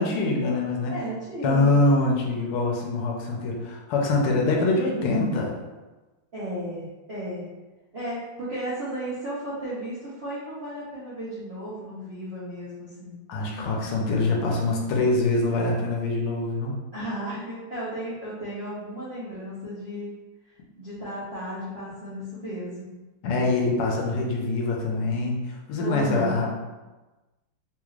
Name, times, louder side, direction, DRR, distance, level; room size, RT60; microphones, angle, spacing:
voice 1, 0.0-0.9 1.4-5.5 13.3-16.7 23.2-26.5, left 2 dB, 90° left, -1 dB, 1.6 m, -24 dB
voice 2, 0.9-1.8 4.5-4.9 6.3-7.5 7.9-13.2 16.9-20.1 20.8-22.9 25.8-26.5, equal, 75° right, -9 dB, 0.5 m, -34 dB
3.9 x 2.4 x 3.1 m, 1.2 s
omnidirectional pair, 2.4 m